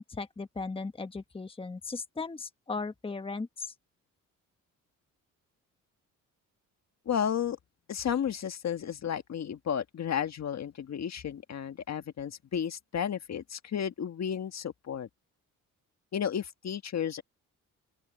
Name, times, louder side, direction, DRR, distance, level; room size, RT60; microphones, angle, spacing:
voice 1, 0.0-3.7, left 4 dB, 15° left, 1.1 m, -37 dB
voice 2, 7.1-7.6 7.9-15.1 16.1-17.2, left 8 dB, 55° left, 1.7 m, -33 dB
open air
cardioid pair, 90°, 33 cm